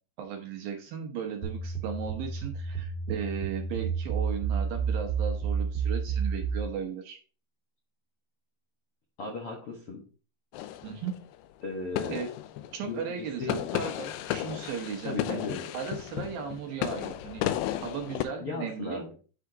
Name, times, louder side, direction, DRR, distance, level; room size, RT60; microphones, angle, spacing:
voice 1, 0.2-7.2 10.8-11.2 12.1-12.3 12.7-15.4 15.7-17.4 17.8-19.0, right 7 dB, 70° right, 3 dB, 2.4 m, -36 dB
sound 1, 1.4-6.7, right 6 dB, ahead, 1.3 m, -30 dB
voice 2, 9.2-10.0 11.6-12.2 12.9-13.0 13.4-13.5 15.0-15.6 18.4-19.1, left 3 dB, 60° left, -2 dB, 1.5 m, -35 dB
sound 2, 10.5-11.4 12.0-13.0 13.4-18.2, left 13 dB, 85° left, 2.6 m, -34 dB
10.5 x 5.0 x 2.9 m, 0.38 s
omnidirectional pair, 4.8 m